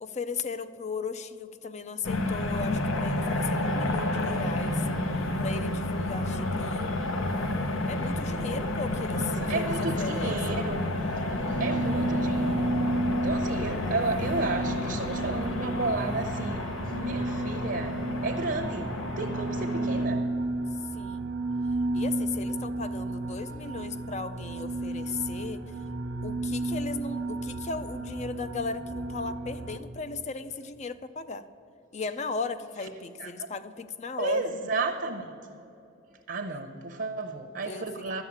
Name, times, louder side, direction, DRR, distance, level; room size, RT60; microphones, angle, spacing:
voice 1, 0.0-4.9 5.4-7.0 7.9-10.6 20.9-21.3 21.9-25.6 26.2-31.5 31.9-34.5 36.5-36.6 37.6-38.2, left 4 dB, 35° left, 12 dB, 0.5 m, -36 dB
sound 1, 2.0-20.1, left 1 dB, 90° left, 1.0 m, -30 dB
voice 2, 9.1-10.8 11.5-12.7 13.2-20.2 33.2-33.5 34.2-35.3 36.3-38.2, right 3 dB, 55° right, 4 dB, 0.8 m, -32 dB
sound 2, 11.1-29.8, right 2 dB, 85° right, 1.0 m, -32 dB
12.0 x 7.2 x 8.6 m, 2.7 s
head